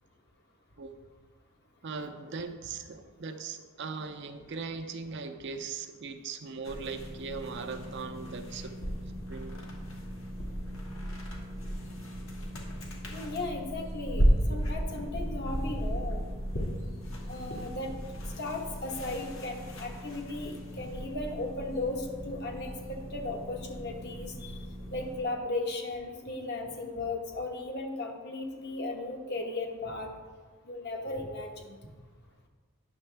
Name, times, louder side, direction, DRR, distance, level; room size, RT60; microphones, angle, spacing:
voice 1, 1.8-8.8 9.3-9.5 14.5-14.6, right 4 dB, 55° right, 7 dB, 0.5 m, -39 dB
sound 1, 6.6-25.2, equal, 65° left, 1.4 m, -35 dB
voice 2, 13.1-16.2 17.3-17.9 18.4-24.6 24.9-30.1 30.6-31.8, left 2 dB, 50° left, 2 dB, 1.1 m, -36 dB
9.6 x 6.5 x 3.3 m, 1.4 s
head